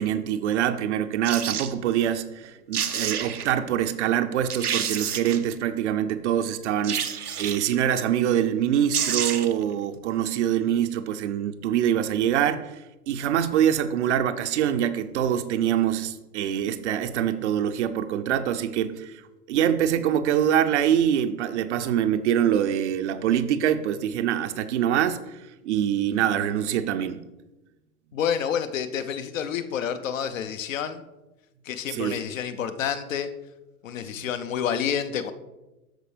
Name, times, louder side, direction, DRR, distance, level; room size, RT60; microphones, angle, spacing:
voice 1, 0.0-12.8 13.1-19.2 19.5-27.2 31.9-32.2 34.1-34.3, right 10 dB, 50° right, 10 dB, 0.6 m, -24 dB
sound 1, 1.2-1.7 2.4-2.5 2.7-3.5 4.1-4.2 4.5-5.5 6.8-7.8 8.6-8.7 8.9-9.6 10.0-10.1, right 8 dB, 85° right, 0.8 m, -28 dB
voice 2, 28.1-31.0 31.7-33.3 33.8-35.3, left 8 dB, 60° left, 10 dB, 0.8 m, -29 dB
12.5 x 4.5 x 3.3 m, 1.0 s
figure-of-eight pair, 100°, 44 cm